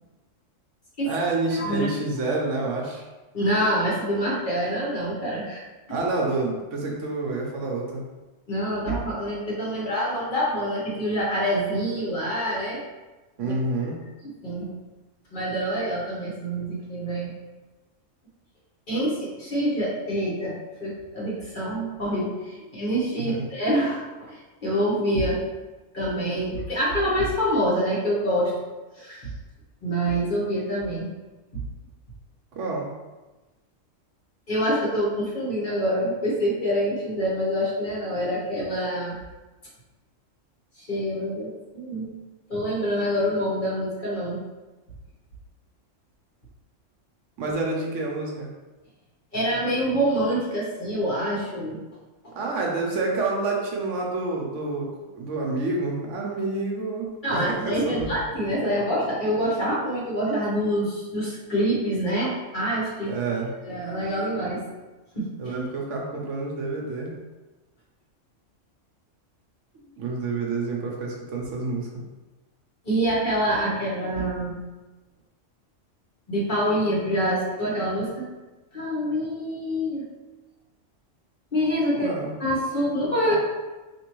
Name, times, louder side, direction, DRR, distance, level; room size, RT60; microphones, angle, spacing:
voice 1, 1.0-3.1 5.9-8.0 13.4-14.0 23.2-23.5 32.5-32.9 47.4-48.5 52.3-54.9 55.1-58.1 63.0-63.5 65.4-67.1 69.7-71.9 81.9-82.3 83.3-83.4, right 3 dB, 75° right, -1 dB, 1.1 m, -28 dB
voice 2, 1.6-1.9 3.3-5.6 8.5-12.8 13.4-13.5 14.4-14.7 15.3-17.3 18.9-20.5 20.8-25.4 25.9-28.5 29.0-29.3 29.8-31.1 34.5-39.1 40.8-42.1 42.5-44.4 49.3-51.8 57.2-63.1 63.6-64.6 65.1-65.5 72.8-74.5 76.3-78.2 78.7-80.0 81.5-82.1 82.4-83.4, equal, 40° left, -6 dB, 1.2 m, -26 dB
4.3 x 3.0 x 3.0 m, 1.2 s
omnidirectional pair, 1.3 m